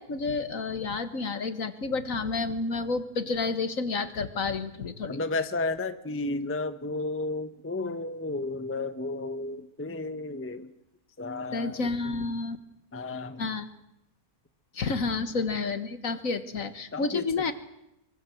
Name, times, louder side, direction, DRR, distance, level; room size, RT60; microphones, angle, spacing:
voice 1, 0.0-5.2 11.5-12.6 13.4-13.7 14.7-17.5, left 4 dB, 60° left, 11 dB, 1.9 m, -30 dB
voice 2, 5.1-10.7 11.2-12.2 12.9-13.5 16.9-17.2, left 2 dB, 10° left, 10 dB, 0.9 m, -33 dB
25.0 x 24.0 x 7.8 m, 0.85 s
omnidirectional pair, 1.6 m